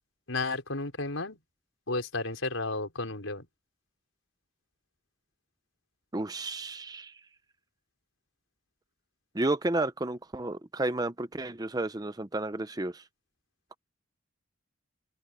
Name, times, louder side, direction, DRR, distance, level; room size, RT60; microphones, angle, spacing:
voice 1, 0.3-1.4 1.9-3.5, left 2 dB, 80° left, 4.7 m, -32 dB
voice 2, 6.1-7.1 9.3-13.0 13.7-13.8, right 2 dB, 20° right, 0.7 m, -32 dB
open air
head